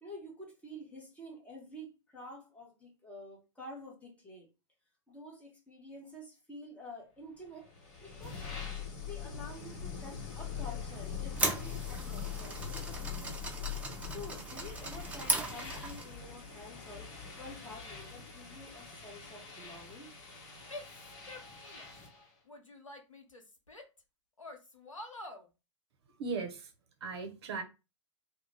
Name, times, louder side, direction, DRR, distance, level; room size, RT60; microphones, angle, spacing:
voice 1, 0.0-4.5 5.1-7.7 8.0-8.5 9.0-13.1 14.0-20.1 20.5-22.2, left 1 dB, 10° left, 0.9 m, -49 dB
sound 1, 7.6-22.2, left 7 dB, 35° left, 0.9 m, -43 dB
sound 2, 11.0-16.2, right 3 dB, 10° right, 0.5 m, -37 dB
Female speech woman speaking / Yell, 20.7-22.0 22.5-24.0 24.4-25.5, left 2 dB, 90° left, 0.7 m, -47 dB
voice 2, 26.2-26.7 27.0-27.6, right 4 dB, 55° right, 0.6 m, -37 dB
2.4 x 2.0 x 3.2 m
figure-of-eight pair, 105°, 16 cm